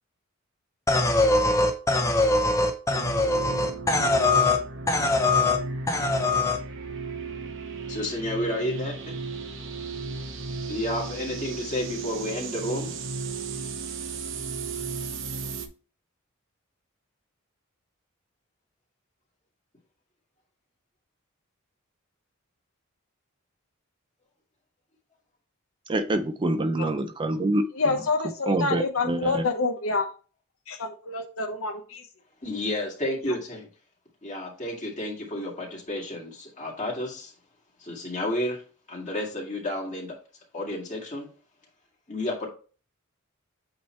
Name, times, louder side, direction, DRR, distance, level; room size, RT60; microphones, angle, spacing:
sound 1, 0.9-4.6 4.9-5.6 5.9-6.6, left 2 dB, 15° left, 0.7 m, -22 dB
sound 2, 2.9-15.7, right 4 dB, 60° right, 0.8 m, -35 dB
voice 1, 7.9-9.1 10.7-12.9 32.4-33.7 34.2-37.3 37.8-38.6 38.9-40.1 40.5-41.3 42.1-42.5, left 1 dB, 35° left, 2.1 m, -31 dB
voice 2, 25.9-28.1 28.5-29.5, right 1 dB, 25° right, 0.4 m, -26 dB
voice 3, 27.8-30.1 30.7-32.0, left 3 dB, 70° left, 0.9 m, -27 dB
8.5 x 2.9 x 4.3 m
head